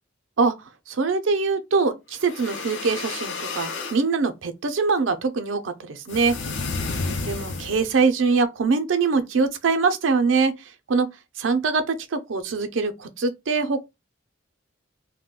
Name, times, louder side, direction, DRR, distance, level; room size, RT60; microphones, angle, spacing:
voice 1, 0.9-6.3 6.8-10.5 10.9-11.1 11.4-13.8, right 4 dB, 85° right, 0.5 m, -23 dB
sound 1, 2.2-4.0 6.1-8.0, left 4 dB, 70° left, 0.5 m, -31 dB
2.3 x 2.1 x 3.5 m
head